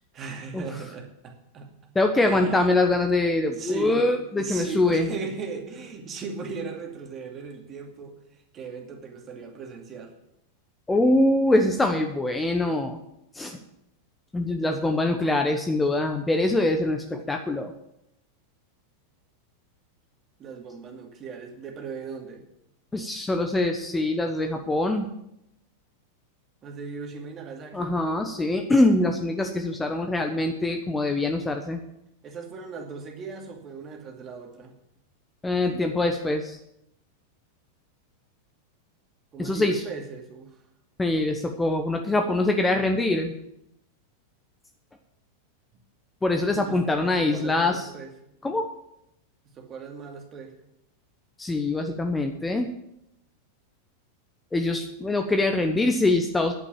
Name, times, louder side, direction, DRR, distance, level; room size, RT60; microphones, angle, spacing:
voice 1, 0.1-1.7 2.2-2.9 3.5-10.1 20.4-22.4 26.6-28.0 32.2-34.7 39.3-40.6 46.5-48.1 49.4-50.6, right 5 dB, 30° right, 3 dB, 2.4 m, -38 dB
voice 2, 1.9-5.1 10.9-13.0 13.3-13.6 14.3-17.7 22.9-25.1 27.7-31.8 35.4-36.6 39.4-39.8 41.0-43.3 46.2-47.9 48.4-48.7 51.4-52.7 54.5-56.5, left 2 dB, 10° left, 5 dB, 1.1 m, -24 dB
11.0 x 9.0 x 7.3 m, 0.80 s
figure-of-eight pair, 90°, 0 cm